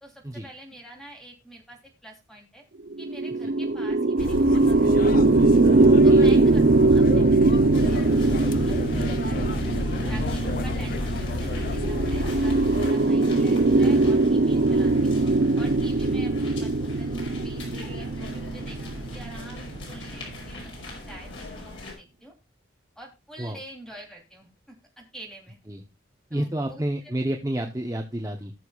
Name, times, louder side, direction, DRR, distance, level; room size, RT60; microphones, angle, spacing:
voice 1, 0.0-2.6 3.0-5.0 6.0-8.4 8.6-9.4 10.1-15.2 15.6-22.3 22.9-25.6 26.3-26.8 27.7-27.8, right 1 dB, 5° left, 0 dB, 3.1 m, -46 dB
sound 1, 2.9-20.4, right 2 dB, 60° right, 0.6 m, -21 dB
sound 2, 4.2-12.9, left 3 dB, 45° left, 0.4 m, -31 dB
voice 2, 5.8-6.4 10.0-10.3 23.4-23.6 25.7-25.8 26.3-28.5, right 1 dB, 15° right, 3 dB, 0.8 m, -30 dB
sound 3, 7.7-21.9, left 2 dB, 90° left, 5.2 m, -40 dB
19.5 x 6.8 x 2.4 m, 0.26 s
head